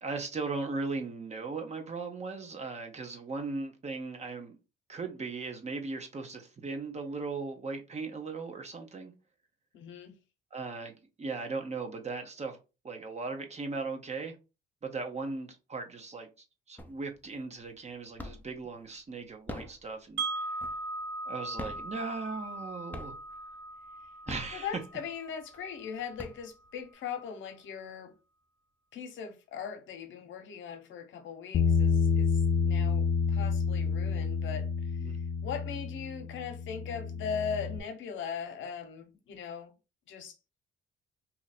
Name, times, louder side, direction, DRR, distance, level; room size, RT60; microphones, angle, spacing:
voice 1, 0.0-4.6 4.9-9.1 10.5-12.6 12.8-14.3 14.8-16.3 16.7-20.6 21.3-23.2 24.3-24.7 35.0-35.2, right 3 dB, 35° right, 1.0 m, -38 dB
voice 2, 9.7-10.2 24.5-28.1 28.9-32.3 32.6-34.7 35.0-35.2 35.4-39.7 40.1-40.3, left 7 dB, 75° left, 0.9 m, -39 dB
sound 1, 16.8-17.3 17.6-18.6 19.3-21.1 21.5-22.6 22.9-23.5 24.1-25.1 25.6-25.7 26.0-26.9, left 1 dB, 10° left, 0.6 m, -43 dB
Wind chime, 20.2-26.2, right 2 dB, 75° right, 0.7 m, -39 dB
Bass guitar, 31.5-37.8, left 5 dB, 55° left, 0.4 m, -29 dB
2.8 x 2.6 x 4.2 m
cardioid pair, 90°, 20 cm